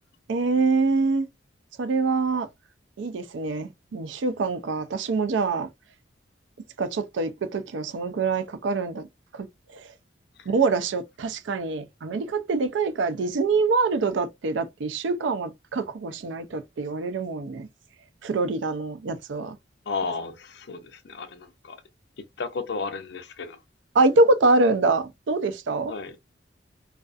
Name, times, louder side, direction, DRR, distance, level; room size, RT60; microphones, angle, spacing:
voice 1, 0.3-1.3 1.8-2.5 3.0-5.7 6.8-9.1 9.3-9.5 9.7-9.8 10.5-17.7 18.2-19.6 23.9-25.9, right 3 dB, 70° right, 0.4 m, -25 dB
voice 2, 19.9-20.8 21.0-21.8 22.4-23.6 25.9-26.2, left 4 dB, 60° left, 0.5 m, -33 dB
2.4 x 2.4 x 2.3 m
head